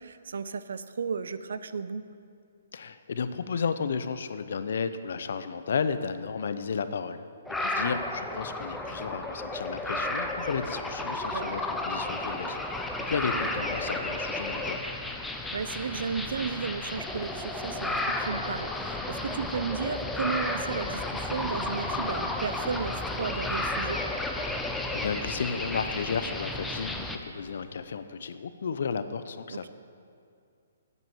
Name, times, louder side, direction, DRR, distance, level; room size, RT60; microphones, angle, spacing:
voice 1, 0.0-2.0 7.9-8.0 11.3-11.5 13.4-13.6 15.5-24.0 29.5-29.7, right 5 dB, 70° right, 13 dB, 0.5 m, -34 dB
voice 2, 2.7-7.2 7.6-14.8 24.6-29.7, left 6 dB, 55° left, 11 dB, 0.5 m, -33 dB
sound 1, 7.5-27.2, left 2 dB, ahead, 0.4 m, -32 dB
Inside Subway Station Mexico City, 21.3-27.8, left 2 dB, 80° left, 2.1 m, -51 dB
9.2 x 8.1 x 7.0 m, 2.3 s
hypercardioid pair, 180°, 0 cm